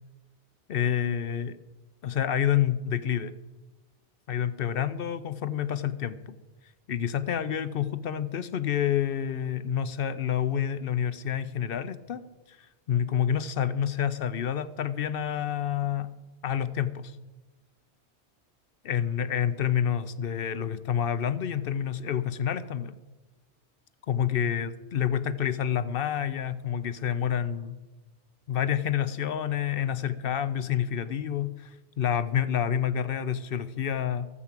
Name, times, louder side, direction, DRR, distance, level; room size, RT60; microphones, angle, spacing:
voice 1, 0.7-1.6 2.0-3.3 4.3-6.4 6.9-12.2 12.9-16.1 16.4-17.2 18.8-22.9 24.1-27.8 28.5-31.7 32.0-34.3, left 9 dB, 60° left, 14 dB, 0.8 m, -28 dB
12.5 x 7.3 x 7.4 m, 1.2 s
omnidirectional pair, 1.1 m